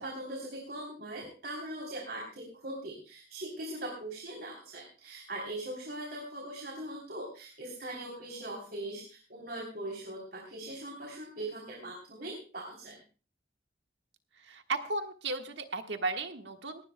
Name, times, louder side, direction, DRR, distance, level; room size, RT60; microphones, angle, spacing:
voice 1, 0.0-13.0, right 1 dB, 55° right, 0 dB, 3.4 m, -41 dB
voice 2, 14.5-16.8, right 3 dB, 75° right, 5 dB, 1.5 m, -35 dB
18.5 x 18.0 x 2.2 m, 0.36 s
head